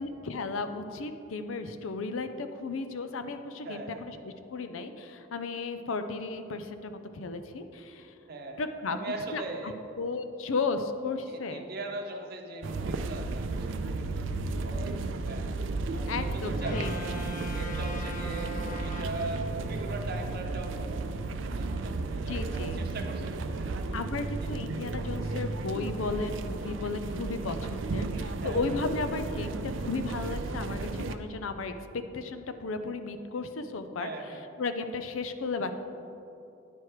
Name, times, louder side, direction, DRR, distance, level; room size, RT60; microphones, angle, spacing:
voice 1, 0.0-8.1 8.6-9.0 9.3-9.4 10.0-11.6 14.2-14.3 16.1-16.9 22.3-22.8 23.9-31.7 32.1-34.1 34.6-35.7, left 3 dB, 90° left, 9 dB, 0.5 m, -34 dB
voice 2, 3.6-4.1 8.3-9.8 11.3-16.9 17.5-23.7 24.4-24.5 28.3-28.6 34.0-34.5, right 2 dB, 50° right, 2 dB, 0.8 m, -40 dB
sound 1, 12.6-31.2, right 3 dB, 70° right, 0.4 m, -33 dB
sound 2, 16.6-19.9, equal, 40° left, 0.9 m, -41 dB
9.9 x 4.6 x 4.8 m, 2.8 s
head